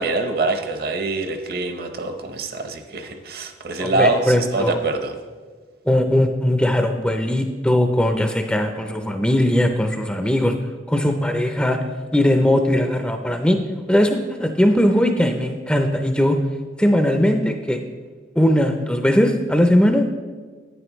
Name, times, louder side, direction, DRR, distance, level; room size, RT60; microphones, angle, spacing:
voice 1, 0.0-5.1, right 2 dB, 55° right, 6 dB, 0.8 m, -24 dB
voice 2, 3.8-4.8 5.9-10.5 10.9-11.8 12.1-13.6 13.9-16.4 16.8-17.8 18.4-20.0, left 1 dB, 5° left, 5 dB, 0.5 m, -19 dB
11.0 x 9.4 x 3.1 m, 1.5 s
head